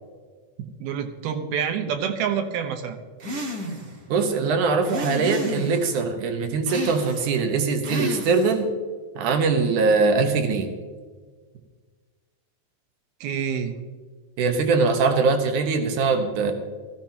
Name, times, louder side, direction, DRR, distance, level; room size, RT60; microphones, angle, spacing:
voice 1, 0.8-3.0 13.2-13.8, right 7 dB, 80° right, 5 dB, 2.9 m, -27 dB
sound 1, 3.2-4.0 4.8-5.9 6.7-7.4 7.8-8.6, equal, 40° right, 1.5 m, -31 dB
voice 2, 4.1-8.7 9.2-10.7 14.4-16.5, right 4 dB, 65° right, 5 dB, 2.4 m, -22 dB
16.5 x 15.0 x 2.9 m, 1.5 s
omnidirectional pair, 4.4 m